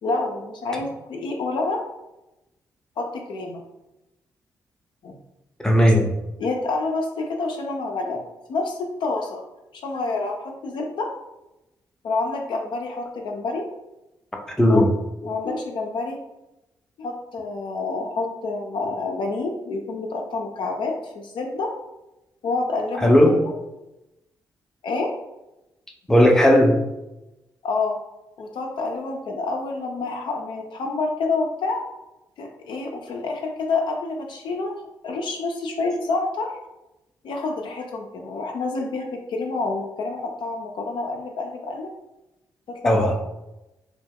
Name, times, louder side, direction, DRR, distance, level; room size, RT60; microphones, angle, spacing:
voice 1, 0.0-1.8 3.0-3.6 5.0-5.2 6.4-9.4 9.7-11.1 12.0-13.7 14.6-14.9 15.2-16.2 17.0-21.7 22.4-23.5 24.8-25.1 27.6-28.0 28.4-31.8 32.4-34.7 35.0-36.5 37.2-41.9 42.7-43.2, left 3 dB, 65° left, 1 dB, 0.4 m, -28 dB
voice 2, 5.6-6.1 14.6-14.9 23.0-23.4 26.1-26.8 42.8-43.1, equal, 5° left, 1 dB, 0.6 m, -16 dB
2.2 x 2.1 x 3.4 m, 0.96 s
hypercardioid pair, 45°, 9 cm